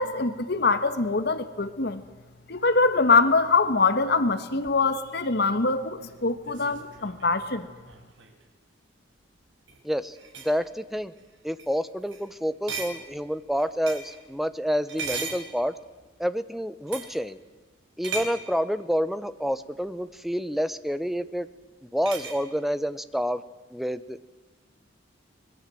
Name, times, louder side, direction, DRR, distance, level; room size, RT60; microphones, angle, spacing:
voice 1, 0.0-2.0 2.5-7.7, left 3 dB, 55° left, 11 dB, 1.4 m, -23 dB
sound 1, 4.6-8.4 9.5-9.8 10.1-10.6 11.2-11.3 11.6-11.7 12.1-12.3 12.7-14.2 14.9-16.0 16.9-17.2 18.0-18.5 20.1-20.2 22.1-22.4, right 4 dB, 75° right, 4.4 m, -38 dB
voice 2, 9.8-10.2 10.4-11.1 11.4-15.7 16.2-17.4 18.0-21.5 21.8-23.4 23.7-24.2, equal, ahead, 13 dB, 0.9 m, -28 dB
24.0 x 21.0 x 7.7 m, 1.3 s
head